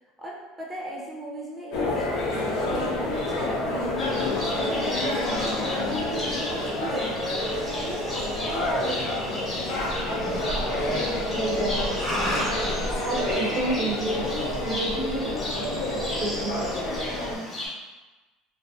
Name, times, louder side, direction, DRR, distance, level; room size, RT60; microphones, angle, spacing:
voice 1, 0.2-3.9 4.4-7.3 7.8-9.5 17.1-17.5, right 1 dB, 15° right, -4 dB, 0.6 m, -37 dB
sound 1, 1.7-17.4, left 1 dB, 65° left, 0.6 m, -29 dB
Livestock farm animals working animals, 4.0-17.7, left 1 dB, 15° left, 0.9 m, -33 dB
sound 2, 6.7-16.7, left 1 dB, 85° left, 0.9 m, -43 dB
voice 2, 11.3-11.9 13.0-16.6, right 2 dB, 60° right, -2 dB, 0.5 m, -30 dB
2.4 x 2.1 x 2.4 m, 1.2 s
supercardioid pair, 115°, 0 cm